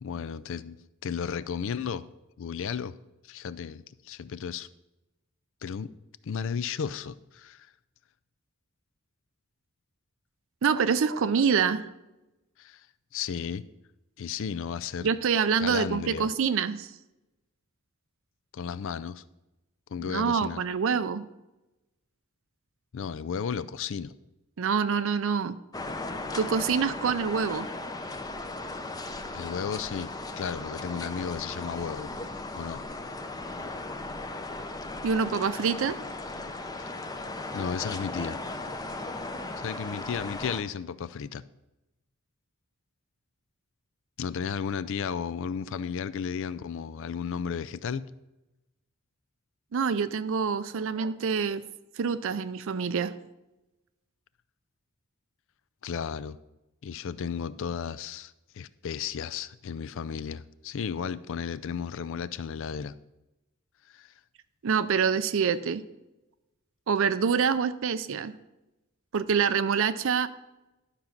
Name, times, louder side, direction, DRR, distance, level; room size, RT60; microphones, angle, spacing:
voice 1, 0.0-0.8 1.0-2.1 2.4-2.9 3.2-4.7 5.6-5.9 6.2-7.7 12.6-12.9 13.1-13.6 14.2-15.1 15.6-16.3 18.5-19.2 19.9-20.6 22.9-24.1 29.3-32.1 32.6-32.8 37.5-38.4 39.6-41.4 44.2-48.0 55.8-56.4 56.8-62.9 63.9-64.1, left 7 dB, 65° left, 15 dB, 0.4 m, -34 dB
voice 2, 10.6-11.9 15.0-16.9 20.0-21.3 24.6-25.6 26.4-27.7 35.0-36.0 49.7-51.6 52.0-53.1 64.6-65.8 66.9-68.3 69.1-70.3, right 6 dB, 65° right, 12 dB, 0.5 m, -26 dB
sound 1, 25.7-40.6, left 2 dB, 20° left, 0.6 m, -37 dB
12.0 x 5.2 x 5.9 m, 0.98 s
head